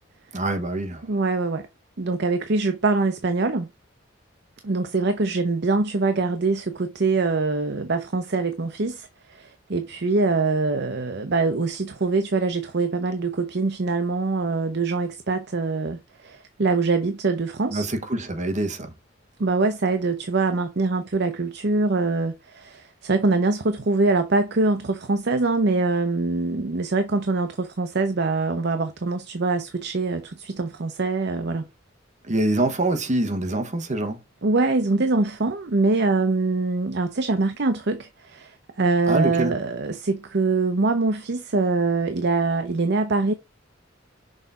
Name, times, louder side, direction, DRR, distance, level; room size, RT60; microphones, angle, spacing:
voice 1, 0.3-1.0 17.7-18.9 32.3-34.2 39.1-39.5, right 2 dB, 40° right, 1.2 m, -25 dB
voice 2, 1.0-1.6 2.0-3.7 4.6-17.9 19.4-31.7 34.4-43.3, right 3 dB, 60° right, 0.7 m, -24 dB
6.4 x 4.1 x 3.7 m
head